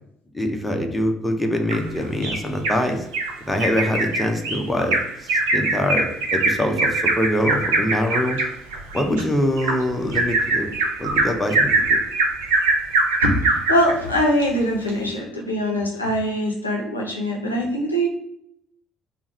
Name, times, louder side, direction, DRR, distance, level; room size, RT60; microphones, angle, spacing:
voice 1, 0.3-3.1 3.4-8.4 8.9-10.7 11.0-12.0, left 1 dB, 5° left, 3 dB, 0.7 m, -24 dB
Bird vocalization bird call bird song, 1.7-2.8 3.1-3.3 3.6-13.9 14.4-14.5 14.9-15.0, right 3 dB, 70° right, 0.7 m, -22 dB
voice 2, 13.2-18.1, equal, 85° left, -2 dB, 0.6 m, -22 dB
3.5 x 2.0 x 4.1 m, 0.72 s
figure-of-eight pair, 50°, 0 cm